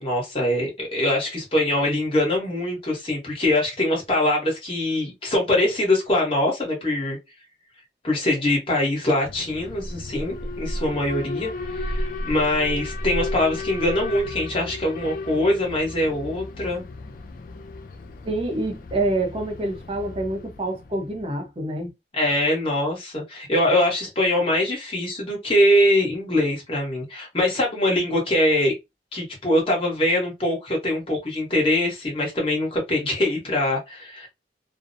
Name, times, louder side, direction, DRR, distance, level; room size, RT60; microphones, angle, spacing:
voice 1, 0.0-7.2 8.0-16.8 22.1-28.7 29.1-34.3, left 1 dB, 30° left, 1.0 m, -23 dB
Alarm, 9.2-21.3, left 2 dB, 50° left, 0.3 m, -33 dB
voice 2, 18.2-21.9, right 2 dB, 30° right, 0.6 m, -27 dB
2.5 x 2.0 x 2.5 m
head